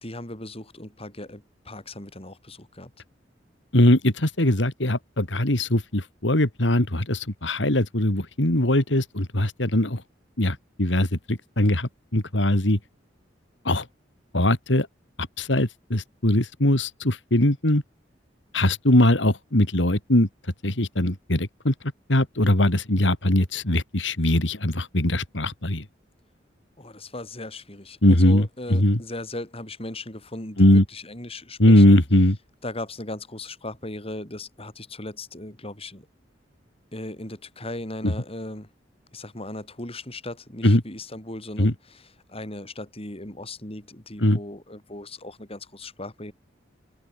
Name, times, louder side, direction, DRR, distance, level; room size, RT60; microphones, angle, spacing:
voice 1, 0.0-2.9 26.8-32.0 32.6-36.1 36.9-38.7 39.1-42.0 42.3-46.3, left 2 dB, 30° left, 6.3 m, -37 dB
voice 2, 3.7-10.0 10.4-12.8 13.6-13.9 14.3-14.9 15.4-17.8 18.5-20.3 20.6-21.7 22.1-25.8 28.0-29.0 30.6-30.8 31.6-32.4 38.0-38.1 40.6-40.8 41.6-41.7 44.2-44.4, left 1 dB, 80° left, 3.3 m, -21 dB
open air
head